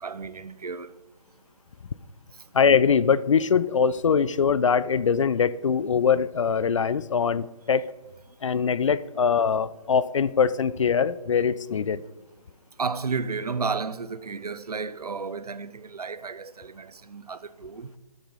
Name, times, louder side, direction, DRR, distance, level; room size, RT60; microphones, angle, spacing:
voice 1, 0.0-1.0 12.8-17.9, right 5 dB, 80° right, 0.8 m, -32 dB
voice 2, 2.5-7.9 8.4-12.0, left 6 dB, 55° left, 0.5 m, -22 dB
12.5 x 8.3 x 4.0 m
figure-of-eight pair, 155°, 20 cm